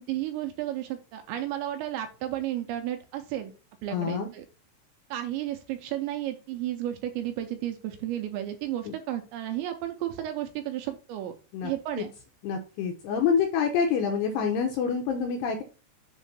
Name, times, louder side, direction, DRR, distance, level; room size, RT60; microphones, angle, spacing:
voice 1, 0.0-3.5 3.8-4.5 5.1-11.3 11.6-12.1, right 12 dB, 80° right, 6 dB, 2.7 m, -33 dB
voice 2, 3.9-4.3 8.8-8.9 11.5-11.7 12.0-12.1 12.4-15.6, left 6 dB, 80° left, 3 dB, 2.5 m, -27 dB
7.3 x 3.1 x 5.8 m, 0.34 s
omnidirectional pair, 5.6 m